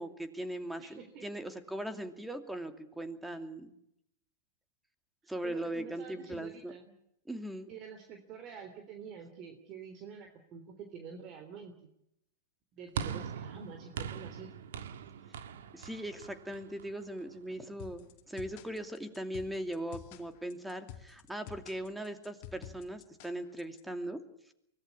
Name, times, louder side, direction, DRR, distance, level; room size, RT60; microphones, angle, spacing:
voice 1, 0.0-3.7 5.3-6.7 7.3-7.7 15.7-24.2, right 1 dB, 5° right, 9 dB, 2.6 m, -39 dB
voice 2, 0.8-1.2 5.4-6.9 7.7-11.9 12.7-14.5, right 6 dB, 40° right, 6 dB, 3.5 m, -48 dB
sound 1, 13.0-17.4, right 7 dB, 70° right, 1.8 m, -41 dB
sound 2, 17.8-23.8, left 11 dB, 50° left, 2.4 m, -50 dB
24.5 x 18.0 x 8.6 m, 0.79 s
hypercardioid pair, 120°, 0 cm